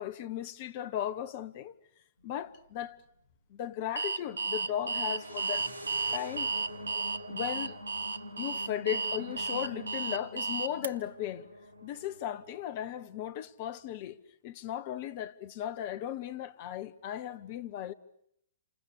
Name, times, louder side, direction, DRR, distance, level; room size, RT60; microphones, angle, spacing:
voice 1, 0.0-1.7 2.2-3.0 3.5-6.5 7.3-7.8 8.4-11.5 11.8-14.2 14.4-17.9, left 11 dB, 40° left, 1.2 m, -36 dB
sound 1, 2.2-2.3 4.3-12.6, equal, 90° left, 1.7 m, -45 dB
Alarm, 4.0-10.9, right 4 dB, 70° right, 1.0 m, -33 dB
28.0 x 27.0 x 6.6 m
figure-of-eight pair, 115°, 0 cm